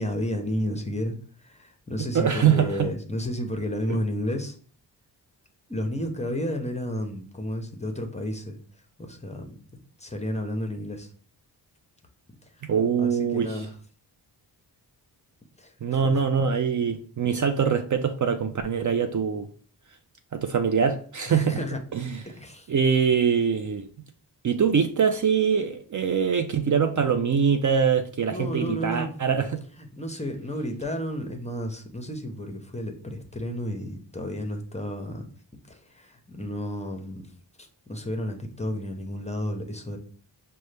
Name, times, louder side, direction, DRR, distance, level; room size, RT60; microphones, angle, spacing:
voice 1, 0.0-4.6 5.7-8.6 9.0-9.6 10.0-11.1 13.0-13.7 15.6-16.2 21.3-21.8 22.2-22.7 28.3-29.1 29.8-35.2 35.7-37.3 37.6-40.0, equal, 15° left, 0.7 m, -32 dB
voice 2, 2.0-2.9 3.9-4.0 12.6-13.7 15.8-19.5 20.3-21.6 21.9-22.2 22.7-23.9 24.4-29.6, right 6 dB, 45° right, 0.4 m, -23 dB
5.3 x 2.2 x 3.2 m
cardioid pair, 75°, 43 cm